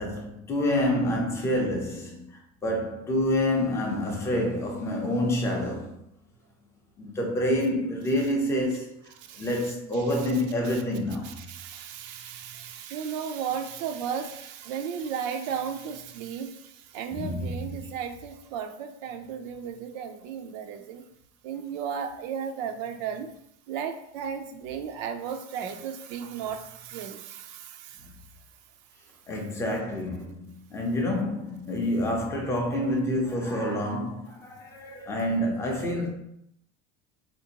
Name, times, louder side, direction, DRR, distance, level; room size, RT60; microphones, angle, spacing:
voice 1, 0.0-5.9 7.0-9.0 9.4-11.3 17.1-17.9 29.3-36.1, left 1 dB, 10° left, 0.4 m, -28 dB
voice 2, 11.2-21.0 21.4-23.3 23.7-28.1, right 7 dB, 80° right, 0.5 m, -35 dB
4.4 x 2.5 x 2.8 m
cardioid pair, 180°, 21 cm